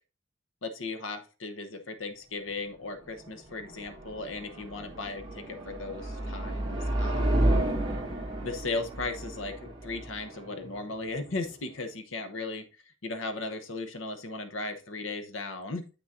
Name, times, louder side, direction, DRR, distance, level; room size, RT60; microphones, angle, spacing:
voice 1, 0.6-7.4 8.3-12.6 13.0-15.9, left 3 dB, 90° left, 9 dB, 1.1 m, -37 dB
sound 1, 2.8-11.8, right 1 dB, 25° right, 2.3 m, -32 dB
8.1 x 6.2 x 2.7 m, 0.33 s
head